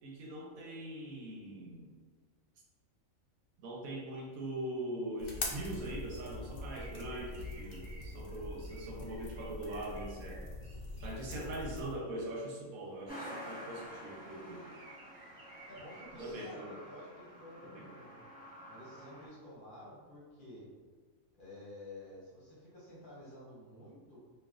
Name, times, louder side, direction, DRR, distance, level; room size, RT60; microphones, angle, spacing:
voice 1, 0.0-1.9 3.6-10.5 11.0-14.7 16.2-16.7 17.6-17.9, right 1 dB, 85° right, -1 dB, 1.1 m, -42 dB
sound 1, 5.2-11.9, left 2 dB, 70° left, 0.5 m, -43 dB
sound 2, 5.4-5.9 6.5-11.2 14.6-16.5, right 1 dB, 50° right, 0.7 m, -55 dB
Truck, 13.1-19.3, equal, 10° left, 0.7 m, -49 dB
voice 2, 15.7-18.3 18.7-20.7 21.4-24.2, left 1 dB, 45° left, -7 dB, 0.8 m, -51 dB
3.2 x 2.3 x 2.4 m, 1.5 s
omnidirectional pair, 1.5 m